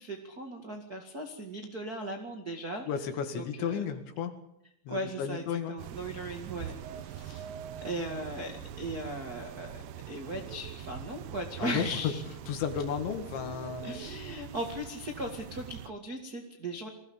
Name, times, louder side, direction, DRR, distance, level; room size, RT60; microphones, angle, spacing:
voice 1, 0.0-2.8 3.3-3.8 4.9-6.7 7.0-7.4 7.8-8.5 8.8-12.2 13.8-16.9, right 1 dB, 50° right, 2 dB, 1.1 m, -38 dB
voice 2, 2.9-4.3 4.9-5.8 11.6-11.9 12.5-14.0, left 7 dB, 70° left, 7 dB, 4.1 m, -33 dB
sound 1, 5.8-15.9, right 9 dB, 70° right, 2.7 m, -43 dB
22.5 x 16.5 x 8.8 m, 0.77 s
omnidirectional pair, 5.6 m